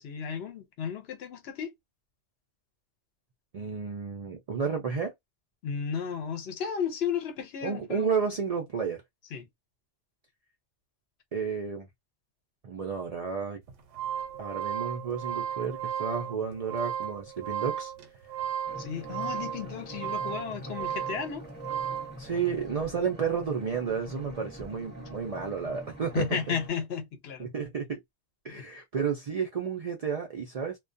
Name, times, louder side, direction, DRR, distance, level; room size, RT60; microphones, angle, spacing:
voice 1, 0.0-1.7 5.6-8.1 9.3-9.5 18.8-21.4 26.1-27.5 28.5-28.6, left 7 dB, 65° left, 0.8 m, -33 dB
voice 2, 3.5-5.1 7.6-9.0 11.3-11.9 12.6-13.6 14.4-17.9 22.2-26.5 27.4-28.0 28.4-30.8, right 6 dB, 60° right, 0.4 m, -32 dB
sound 1, 13.7-22.2, right 9 dB, 85° right, 1.0 m, -34 dB
sound 2, 18.6-26.7, equal, 10° left, 0.7 m, -44 dB
2.2 x 2.2 x 2.5 m
omnidirectional pair, 1.2 m